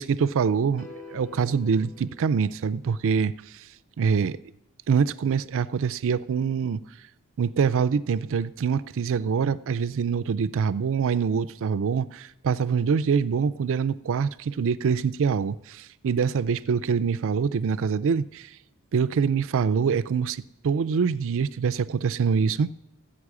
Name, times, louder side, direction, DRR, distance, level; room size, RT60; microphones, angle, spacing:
voice 1, 0.0-3.3 4.0-4.4 4.9-6.8 7.4-18.5 18.9-22.7, right 6 dB, 60° right, 0.4 m, -25 dB
sound 1, 0.8-3.1, left 4 dB, 40° left, 2.7 m, -47 dB
14.0 x 8.8 x 4.8 m
head